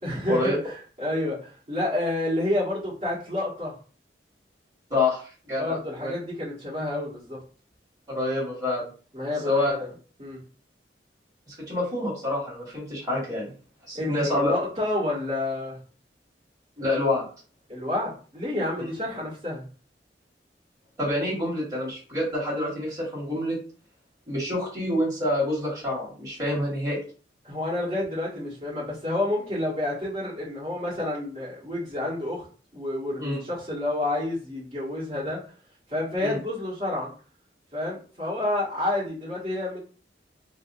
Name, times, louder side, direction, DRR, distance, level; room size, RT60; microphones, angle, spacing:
voice 1, 0.0-3.7 5.6-7.4 9.1-9.9 10.2-10.4 13.9-15.8 17.7-19.7 27.4-32.5 32.7-35.4 35.9-37.1 37.7-39.8, left 1 dB, 40° right, -10 dB, 1.6 m, -29 dB
voice 2, 4.9-6.1 8.1-8.9 9.5-9.7 11.5-13.5 13.9-14.5 16.8-17.3 21.0-23.6 24.3-27.0 33.2-33.4 36.2-36.4, left 1 dB, 20° right, -7 dB, 1.9 m, -27 dB
5.2 x 2.0 x 2.7 m, 0.40 s
head